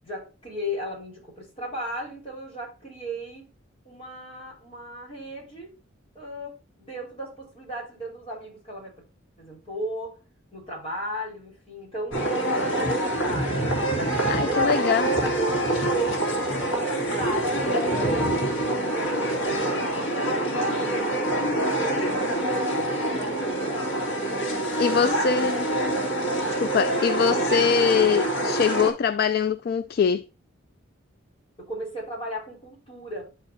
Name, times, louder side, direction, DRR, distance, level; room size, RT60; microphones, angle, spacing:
voice 1, 0.0-3.5 3.8-5.7 6.1-9.0 9.4-10.2 10.5-13.7 14.4-21.0 21.6-24.2 24.9-25.3 31.6-33.3, equal, 30° left, 4.7 m, -36 dB
sound 1, 12.1-28.9, right 1 dB, 75° left, 2.4 m, -25 dB
voice 2, 14.3-15.1 24.8-25.7 26.6-30.2, left 6 dB, 50° left, 0.3 m, -23 dB
10.5 x 5.0 x 2.7 m
head